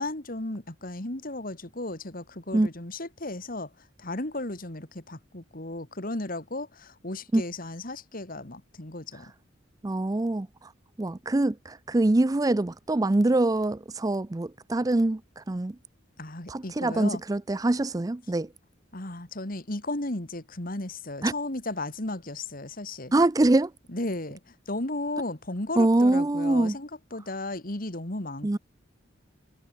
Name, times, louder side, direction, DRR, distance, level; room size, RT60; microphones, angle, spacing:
voice 1, 0.0-3.7 4.0-9.3 16.2-17.2 18.9-23.1 23.9-28.6, left 2 dB, 45° left, 2.6 m, -35 dB
voice 2, 9.8-10.7 11.0-15.8 16.5-18.5 21.2-21.3 23.1-23.7 25.8-26.8 28.4-28.6, right 2 dB, 20° right, 0.4 m, -24 dB
head